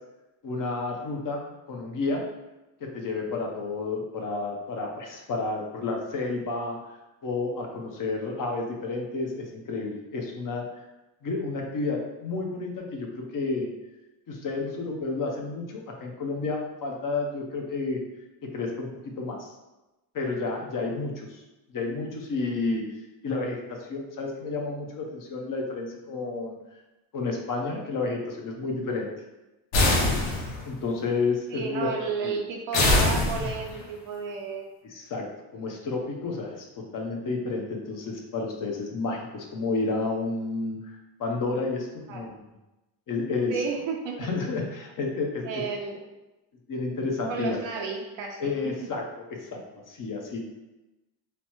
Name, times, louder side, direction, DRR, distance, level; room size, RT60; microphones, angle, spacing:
voice 1, 0.4-2.2 2.9-10.6 11.2-13.7 14.3-18.0 18.5-18.9 19.2-19.5 20.1-21.4 21.7-22.8 23.2-26.6 27.1-29.1 30.6-31.9 32.2-32.4 34.8-35.2 35.5-36.7 36.9-42.3 43.1-43.6 44.2-45.6 46.7-47.9 48.4-49.6 49.9-50.4, left 3 dB, 40° left, 1 dB, 0.7 m, -31 dB
sound 1, 29.7-30.7 32.7-33.8, left 2 dB, 85° left, 0.8 m, -23 dB
voice 2, 31.5-34.7 42.1-42.2 43.5-44.3 45.4-46.0 47.3-48.5, right 5 dB, 65° right, 1 dB, 0.6 m, -32 dB
3.1 x 2.0 x 3.0 m, 1.0 s
supercardioid pair, 75°, 48 cm